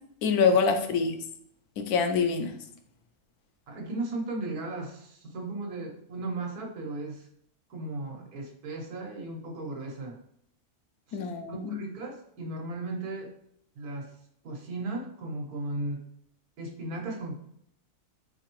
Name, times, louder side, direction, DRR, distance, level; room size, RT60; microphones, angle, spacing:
voice 1, 0.2-1.2 1.8-2.5 11.1-11.8, left 5 dB, 80° left, 7 dB, 1.1 m, -25 dB
voice 2, 3.7-7.3 7.7-10.2 11.5-13.3 13.8-14.1 14.4-16.1 16.6-17.4, right 2 dB, 90° right, 0 dB, 1.4 m, -36 dB
4.7 x 3.3 x 3.0 m, 0.70 s
omnidirectional pair, 1.6 m